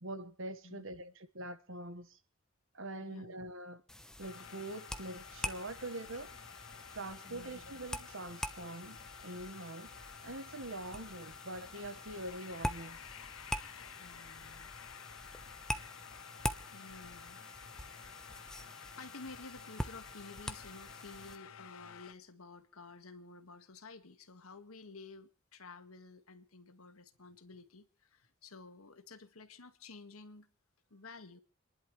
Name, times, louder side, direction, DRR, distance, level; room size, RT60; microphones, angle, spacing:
voice 1, 0.0-2.2 2.7-3.8 4.2-6.4 6.9-13.0, right 1 dB, 65° right, 1.5 m, -44 dB
voice 2, 0.6-1.1 3.0-3.3 7.2-7.7 14.0-14.7 16.7-17.4 19.0-30.5 30.9-31.4, left 3 dB, 90° left, 1.8 m, -52 dB
sound 1, 3.9-21.4, equal, 5° left, 1.0 m, -45 dB
sound 2, 4.2-22.1, left 8 dB, 70° left, 0.7 m, -52 dB
29.5 x 11.0 x 3.2 m
head